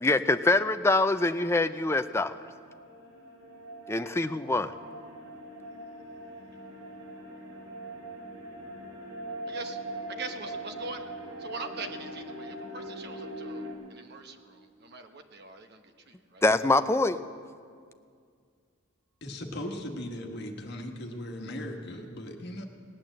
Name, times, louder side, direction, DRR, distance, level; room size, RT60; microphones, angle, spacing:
voice 1, 0.0-2.3 3.9-4.7 16.4-17.2, left 2 dB, 10° left, 10 dB, 0.4 m, -24 dB
sound 1, 1.4-13.7, right 1 dB, 75° right, 2.8 m, -42 dB
voice 2, 9.5-9.8 10.1-11.0 11.4-16.4, right 3 dB, 50° right, 7 dB, 1.0 m, -42 dB
voice 3, 19.2-22.6, left 1 dB, 55° left, 3 dB, 1.5 m, -38 dB
18.5 x 8.9 x 7.5 m, 2.1 s
head